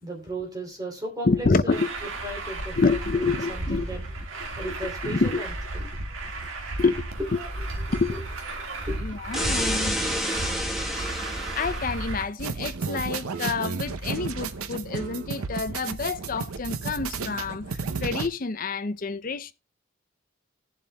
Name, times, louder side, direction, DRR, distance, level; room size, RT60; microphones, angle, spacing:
voice 1, 0.0-4.0 4.3-6.2 7.2-7.3 7.6-8.2 8.6-9.4, right 1 dB, 15° right, 2.9 m, -37 dB
voice 2, 1.3-1.9 2.8-3.9 5.0-5.4 6.8-7.0 7.3-7.4 7.9-8.2 9.0-10.0 11.5-19.5, left 4 dB, 40° left, 0.5 m, -27 dB
Truck, 1.7-12.2, right 2 dB, 70° right, 1.7 m, -33 dB
sound 1, 9.3-11.8, equal, ahead, 1.1 m, -29 dB
sound 2, 12.4-18.3, right 4 dB, 90° right, 0.7 m, -32 dB
19.5 x 7.3 x 2.2 m
head